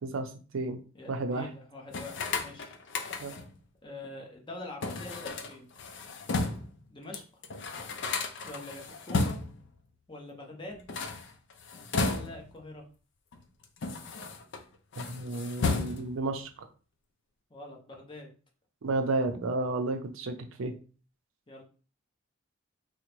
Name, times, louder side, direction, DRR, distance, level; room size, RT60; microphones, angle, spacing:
voice 1, 0.0-0.8 1.1-1.5 3.2-3.4 15.0-16.5 18.8-20.7, right 2 dB, 80° right, 6 dB, 0.5 m, -32 dB
voice 2, 0.9-2.7 3.8-5.7 6.9-7.4 8.4-9.4 10.1-10.9 12.0-12.8 17.5-18.3 21.5-21.6, left 2 dB, 25° left, 0 dB, 0.8 m, -44 dB
sound 1, 1.9-3.6 4.8-6.8 7.1-7.2 7.4-9.7 10.7-12.6 13.3-14.6 14.9-16.3, left 3 dB, 60° left, 0.5 m, -33 dB
3.6 x 2.1 x 3.0 m, 0.37 s
head